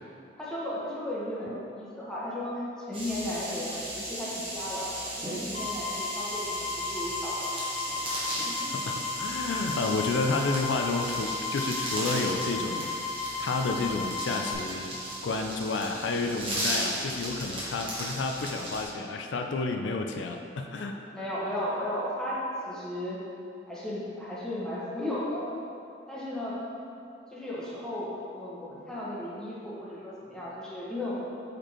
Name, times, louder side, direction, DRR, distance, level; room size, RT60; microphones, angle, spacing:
voice 1, 0.4-2.6 2.9-4.9 5.2-7.5 8.4-8.9 16.5-16.8 21.0-23.2 23.7-25.4 26.1-26.6 27.3-31.2, left 1 dB, 5° left, -8 dB, 1.1 m, -35 dB
sound 1, 2.9-18.8, right 1 dB, 30° right, 1.3 m, -36 dB
sound 2, 5.5-14.5, left 4 dB, 35° left, 1.2 m, -35 dB
voice 2, 8.7-13.0 13.4-15.0 15.2-21.0, left 3 dB, 85° left, 4 dB, 0.4 m, -30 dB
5.1 x 4.4 x 4.3 m, 2.7 s
head